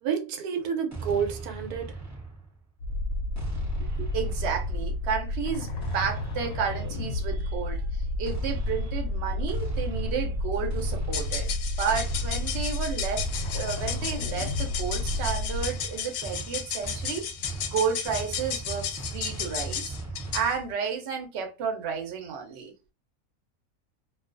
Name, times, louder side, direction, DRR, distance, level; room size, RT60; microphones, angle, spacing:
voice 1, 0.0-2.0, right 7 dB, 85° right, 1.2 m, -29 dB
sound 1, 0.9-2.7 3.4-5.1 5.8-7.4 8.2-20.5, right 3 dB, 25° right, 0.3 m, -39 dB
sound 2, 2.8-15.7, left 2 dB, 70° left, 0.8 m, -31 dB
voice 2, 3.8-11.5 11.8-13.3 13.5-20.0 20.3-22.7, right 6 dB, 55° right, 0.8 m, -32 dB
sound 3, 11.0-20.6, left 8 dB, 90° left, 1.1 m, -34 dB
2.4 x 2.3 x 2.5 m
omnidirectional pair, 1.6 m